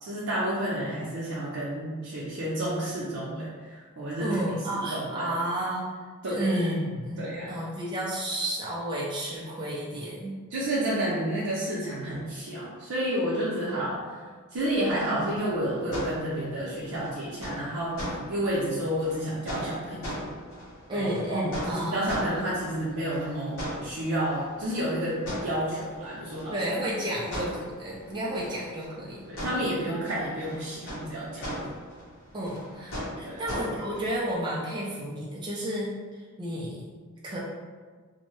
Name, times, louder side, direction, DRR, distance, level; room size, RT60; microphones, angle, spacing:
voice 1, 0.0-4.4 4.7-5.3 6.2-6.5 7.2-7.6 10.5-14.2 14.5-20.2 20.9-26.5 28.3-28.4 29.3-31.8 33.2-33.4, right 1 dB, 85° right, -9 dB, 0.6 m, -30 dB
voice 2, 4.2-7.2 7.5-10.4 20.9-22.4 26.5-29.2 29.8-29.9 32.3-36.8 37.2-37.4, right 1 dB, 20° right, -6 dB, 0.4 m, -31 dB
sound 1, 14.5-34.3, equal, 60° left, 1.0 m, -40 dB
2.6 x 2.1 x 3.0 m, 1.5 s
head